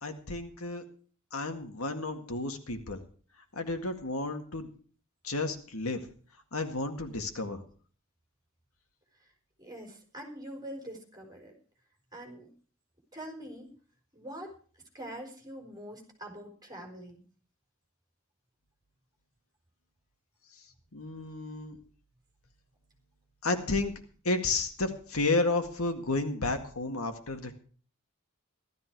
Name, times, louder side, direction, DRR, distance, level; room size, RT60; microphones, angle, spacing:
voice 1, 0.0-0.8 1.3-3.0 3.6-4.7 5.2-6.0 6.5-7.6 20.9-21.8 23.4-23.9 24.3-27.5, left 3 dB, 90° left, 6 dB, 1.9 m, -32 dB
voice 2, 9.6-11.5 12.1-12.5 13.1-13.7 14.1-14.5 14.9-17.2, right 1 dB, 20° right, 1 dB, 4.4 m, -44 dB
15.5 x 13.0 x 4.7 m, 0.43 s
head